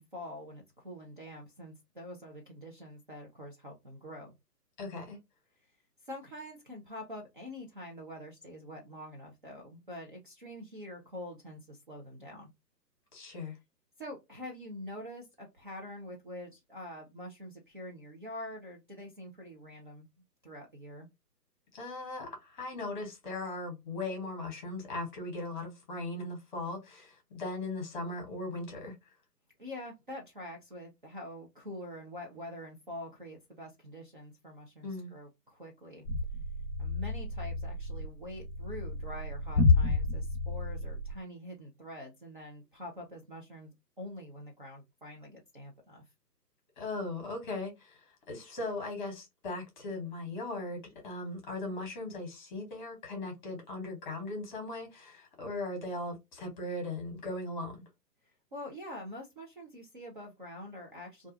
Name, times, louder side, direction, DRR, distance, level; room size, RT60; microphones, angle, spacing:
voice 1, 0.0-4.3 6.0-12.5 14.0-20.1 20.4-21.1 29.6-36.1 36.8-46.0 58.5-61.3, left 1 dB, 35° right, 0.4 m, -45 dB
voice 2, 4.8-5.2 13.1-13.6 21.7-28.9 34.8-35.1 46.8-57.8, left 2 dB, 30° left, 1.0 m, -38 dB
sound 1, 36.0-41.1, left 3 dB, 10° left, 0.7 m, -30 dB
2.3 x 2.2 x 2.5 m
figure-of-eight pair, 140°, 49 cm